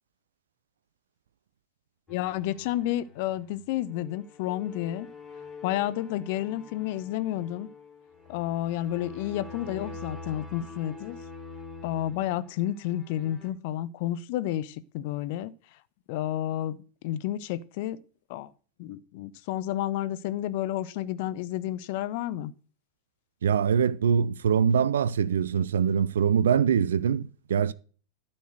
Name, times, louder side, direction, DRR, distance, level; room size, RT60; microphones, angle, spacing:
voice 1, 2.1-5.1 5.6-7.7 8.3-11.2 11.8-15.5 16.1-18.0 18.3-18.5 18.8-22.5, left 13 dB, 50° left, 0.6 m, -31 dB
sound 1, 2.1-13.5, left 4 dB, 5° left, 3.4 m, -45 dB
voice 2, 23.4-27.7, right 7 dB, 65° right, 0.4 m, -23 dB
12.0 x 4.4 x 7.8 m
figure-of-eight pair, 90°, 0 cm